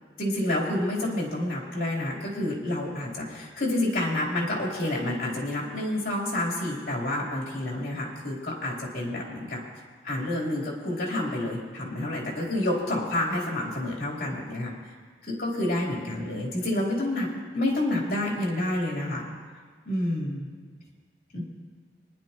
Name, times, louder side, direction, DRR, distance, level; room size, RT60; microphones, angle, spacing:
voice 1, 0.2-9.6 10.0-14.7 15.2-19.2 19.9-20.5 21.3-21.4, left 1 dB, 55° left, -4 dB, 3.6 m, -29 dB
24.5 x 10.5 x 3.0 m, 1.5 s
head